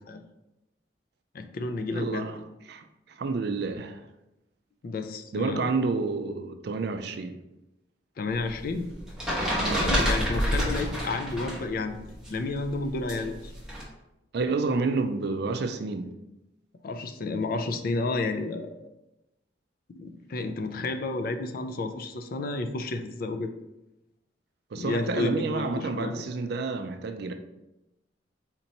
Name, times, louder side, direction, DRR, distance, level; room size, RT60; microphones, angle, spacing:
voice 1, 1.3-2.3 4.8-5.7 8.2-8.9 9.8-13.5 16.8-18.7 19.9-23.5 24.7-26.2, left 3 dB, 50° left, 0.4 m, -31 dB
voice 2, 1.9-2.4 2.7-4.0 5.3-7.3 9.6-9.9 14.3-16.1 24.7-27.3, right 4 dB, 60° right, 0.4 m, -29 dB
sound 1, 8.3-11.7 11.9-13.8, equal, 5° right, 1.1 m, -28 dB
4.4 x 2.9 x 3.9 m
head